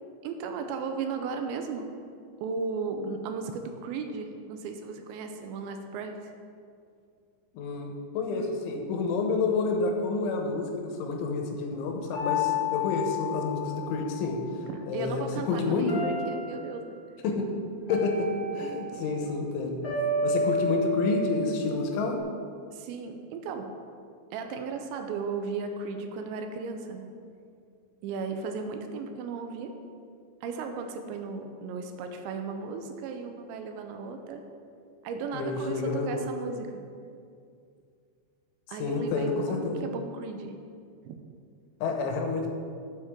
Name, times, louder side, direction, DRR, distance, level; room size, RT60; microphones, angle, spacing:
voice 1, 0.2-1.9 2.4-6.3 14.7-17.0 22.7-23.7 24.3-27.1 28.0-29.7 30.4-34.4 35.0-36.8 38.7-40.5 41.1-41.2, right 4 dB, 80° right, 6 dB, 2.8 m, -35 dB
voice 2, 7.5-14.4 14.9-16.0 17.2-17.5 17.9-19.8 20.2-22.2 35.3-36.3 38.8-39.8 41.8-42.5, left 3 dB, 90° left, 2 dB, 3.4 m, -29 dB
sound 1, 12.1-14.5 15.9-16.9 17.9-19.2 19.8-22.2, left 2 dB, 45° left, 2.3 m, -31 dB
9.5 x 8.0 x 3.6 m, 2.3 s
omnidirectional pair, 5.4 m